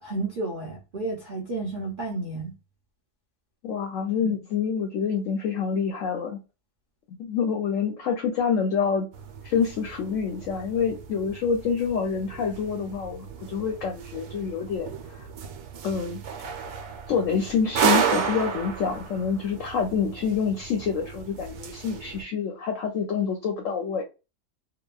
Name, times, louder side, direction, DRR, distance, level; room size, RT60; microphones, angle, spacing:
voice 1, 0.0-2.5 4.2-4.3, right 2 dB, 60° right, 0.5 m, -32 dB
voice 2, 3.6-6.4 7.1-9.1 9.4-15.3 15.8-16.5 17.1-24.0, left 6 dB, 65° left, 0.8 m, -27 dB
sound 1, 9.1-22.2, right 7 dB, 80° right, 1.1 m, -32 dB
2.9 x 2.2 x 2.3 m
omnidirectional pair, 1.7 m